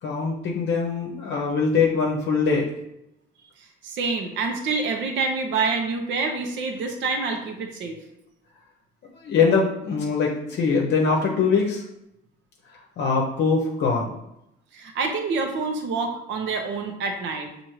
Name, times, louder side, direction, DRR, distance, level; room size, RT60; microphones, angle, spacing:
voice 1, 0.0-2.7 9.1-11.8 12.7-14.1, left 5 dB, 55° left, -1 dB, 0.8 m, -22 dB
voice 2, 3.8-8.0 14.7-17.5, right 4 dB, 60° right, 3 dB, 0.8 m, -27 dB
6.2 x 2.6 x 3.1 m, 0.83 s
cardioid pair, 120°, 21 cm